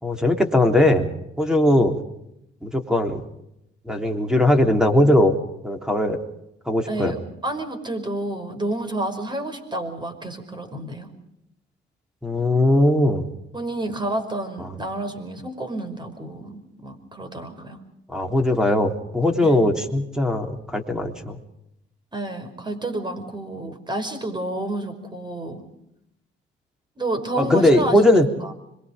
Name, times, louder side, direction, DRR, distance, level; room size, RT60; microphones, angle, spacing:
voice 1, 0.0-1.1 1.4-2.0 2.6-3.2 3.9-5.4 5.6-6.2 6.7-7.1 12.2-13.2 18.1-21.4 27.4-28.3, left 1 dB, 5° right, 5 dB, 3.6 m, -19 dB
voice 2, 6.9-11.1 13.5-17.8 19.4-19.6 22.1-25.6 27.0-28.5, right 1 dB, 20° right, 8 dB, 5.3 m, -30 dB
26.0 x 22.5 x 5.2 m, 0.81 s
cardioid pair, 90°, 20 cm